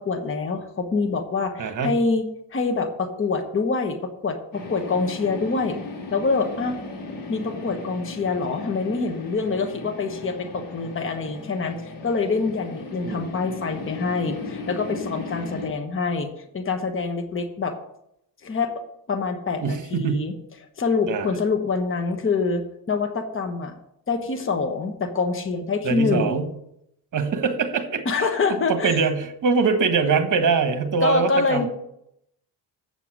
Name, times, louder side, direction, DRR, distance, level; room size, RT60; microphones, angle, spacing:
voice 1, 0.0-2.2 2.5-5.8 6.1-6.8 7.3-17.7 18.4-18.7 19.1-20.3 20.8-22.6 22.9-23.7 24.1-26.4 28.0-29.0 31.0-31.7, left 4 dB, 30° left, 6 dB, 1.2 m, -25 dB
voice 2, 1.6-2.0 13.0-13.3 19.6-20.3 21.1-21.3 25.8-26.5 27.1-28.0 28.5-31.7, right 5 dB, 45° right, 8 dB, 1.5 m, -23 dB
sound 1, 4.5-15.7, left 3 dB, 55° left, 2.4 m, -36 dB
8.5 x 7.0 x 6.2 m, 0.77 s
cardioid pair, 115°, 42 cm